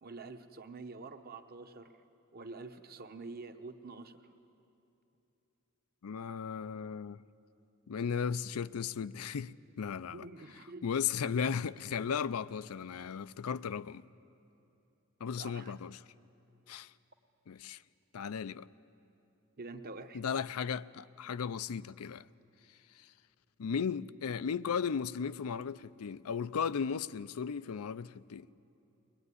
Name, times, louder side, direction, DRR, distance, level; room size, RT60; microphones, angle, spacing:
voice 1, 0.0-1.9 2.3-4.3 10.1-10.8 15.3-15.7 19.6-20.2, right 3 dB, 45° right, 1.0 m, -47 dB
voice 2, 6.0-7.2 7.9-10.3 10.8-14.0 15.2-16.0 16.7-16.9 17.5-17.8 18.1-18.7 20.1-22.2 23.6-28.5, left 6 dB, 80° left, 0.5 m, -36 dB
22.5 x 20.0 x 9.8 m
head